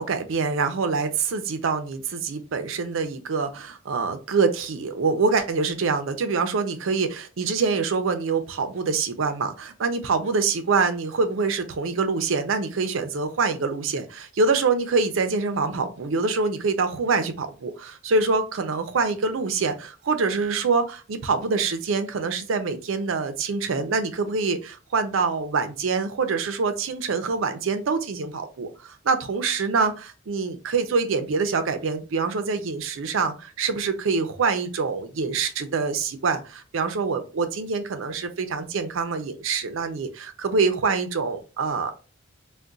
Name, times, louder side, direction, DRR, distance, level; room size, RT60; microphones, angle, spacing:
voice 1, 0.0-41.9, right 4 dB, 85° right, 8 dB, 0.5 m, -25 dB
2.4 x 2.2 x 3.8 m, 0.34 s
head